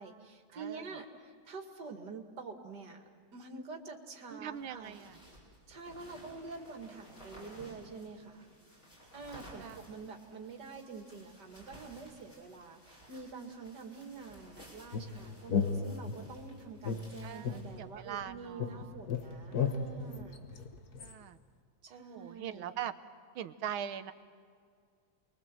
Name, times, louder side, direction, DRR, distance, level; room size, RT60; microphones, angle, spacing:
voice 1, 0.0-3.0 3.3-5.0 5.7-8.5 9.1-20.4 21.8-22.8, right 4 dB, 55° right, 3 dB, 2.8 m, -47 dB
voice 2, 0.5-0.9 4.3-5.2 6.1-6.4 9.6-9.8 17.2-18.9 21.0-21.4 21.9-22.9 23.4-24.1, right 9 dB, 85° right, 11 dB, 1.8 m, -42 dB
sound 1, 4.5-17.8, right 1 dB, 25° left, 7.3 m, -56 dB
sound 2, 14.9-16.4 16.8-18.3 18.6-21.1, left 6 dB, 55° left, 1.7 m, -35 dB
30.0 x 22.5 x 7.7 m, 2.1 s
omnidirectional pair, 2.2 m